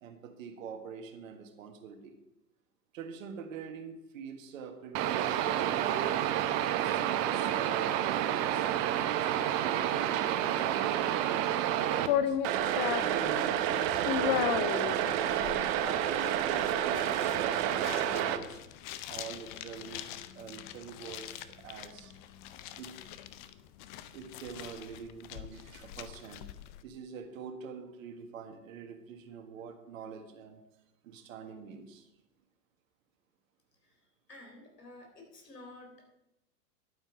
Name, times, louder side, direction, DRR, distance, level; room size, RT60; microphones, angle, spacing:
voice 1, 0.0-2.1 2.9-6.1 6.7-8.7 9.1-12.4 13.0-15.4 16.0-18.6 19.1-22.2 22.8-23.0 24.1-26.4 26.8-30.6 31.0-32.1, right 6 dB, 55° right, 6 dB, 1.8 m, -45 dB
sound 1, 4.9-12.1 12.4-18.4, right 11 dB, 30° right, 0.7 m, -29 dB
sound 2, 12.1-26.8, left 10 dB, 30° left, 0.6 m, -37 dB
voice 2, 34.3-36.1, left 2 dB, 75° left, 1 dB, 3.8 m, -51 dB
11.0 x 8.9 x 5.0 m, 0.93 s
figure-of-eight pair, 100°, 49 cm